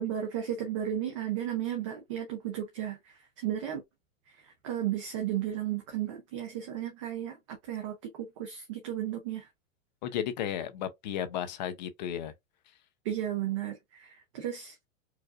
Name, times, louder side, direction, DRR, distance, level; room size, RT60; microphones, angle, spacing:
voice 1, 0.0-3.8 4.3-9.5 13.0-14.8, right 11 dB, 25° right, 0.4 m, -34 dB
voice 2, 10.0-12.3, left 10 dB, 35° left, 0.5 m, -34 dB
4.7 x 2.4 x 2.4 m
supercardioid pair, 170°, 39 cm